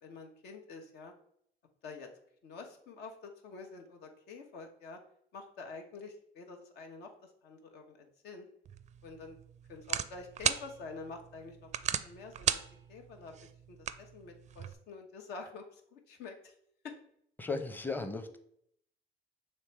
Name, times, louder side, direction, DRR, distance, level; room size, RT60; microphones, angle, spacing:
voice 1, 0.0-1.1 1.8-2.1 2.4-5.0 5.3-7.1 7.4-8.5 9.0-9.4 9.7-11.7 12.0-12.6 12.9-16.5 16.8-16.9, left 4 dB, 80° left, 3 dB, 1.2 m, -47 dB
sound 1, 8.7-14.7, right 9 dB, 45° right, 0.4 m, -37 dB
voice 2, 17.4-18.4, left 3 dB, 10° left, 8 dB, 0.7 m, -36 dB
6.4 x 3.3 x 4.6 m, 0.71 s
cardioid pair, 110°, 17 cm